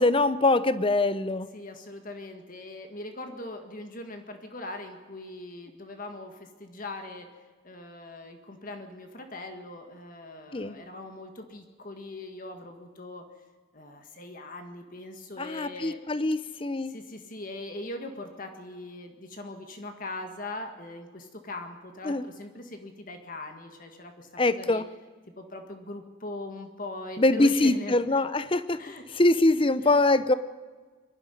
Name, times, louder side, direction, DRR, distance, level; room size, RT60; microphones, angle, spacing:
voice 1, 0.0-1.5 10.5-10.8 15.4-16.9 22.1-22.2 24.4-24.8 27.2-28.8 29.2-30.3, left 2 dB, 25° left, 14 dB, 0.7 m, -23 dB
voice 2, 1.5-13.2 13.7-16.0 16.8-24.8 25.4-28.2 28.8-29.0 29.8-30.0, left 2 dB, 40° left, 5 dB, 1.8 m, -41 dB
24.5 x 11.5 x 9.9 m, 1.4 s
head